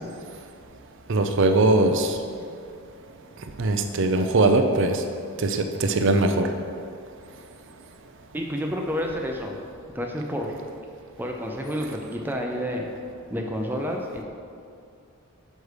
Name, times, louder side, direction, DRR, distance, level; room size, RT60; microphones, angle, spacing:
voice 1, 1.1-2.2 3.6-5.0 5.4-6.5, right 2 dB, 55° right, 6 dB, 0.5 m, -21 dB
voice 2, 8.3-9.5 9.9-10.6 11.2-12.9 13.3-14.2, equal, 10° right, 1 dB, 0.6 m, -29 dB
6.5 x 5.4 x 4.8 m, 2.4 s
head